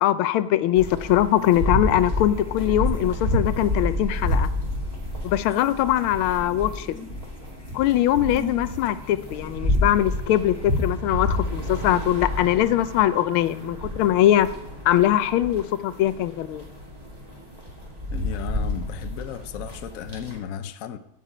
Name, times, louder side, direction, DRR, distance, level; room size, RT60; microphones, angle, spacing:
voice 1, 0.0-4.5 5.2-7.0 7.7-14.5 14.8-16.6, left 12 dB, 85° left, 1.5 m, -22 dB
sound 1, 0.7-20.4, left 1 dB, 20° right, 2.6 m, -29 dB
sound 2, 2.0-10.9, equal, 15° left, 0.6 m, -45 dB
voice 2, 18.1-21.0, left 9 dB, 70° left, 0.8 m, -35 dB
16.0 x 5.5 x 5.0 m
omnidirectional pair, 2.3 m